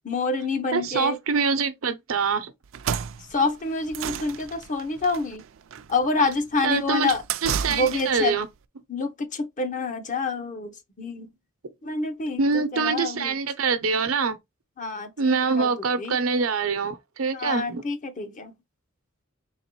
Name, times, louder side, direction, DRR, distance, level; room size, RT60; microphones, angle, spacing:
voice 1, 0.1-1.2 3.3-5.4 5.9-7.2 7.7-8.4 8.9-11.3 11.8-13.3 14.8-16.2 17.3-18.5, left 3 dB, 40° left, 0.7 m, -27 dB
voice 2, 0.7-2.5 6.6-7.1 7.4-8.5 12.4-14.4 15.2-17.8, right 5 dB, 90° right, 0.7 m, -24 dB
sound 1, 2.6-8.3, right 8 dB, 65° right, 0.4 m, -33 dB
4.0 x 3.0 x 2.9 m
head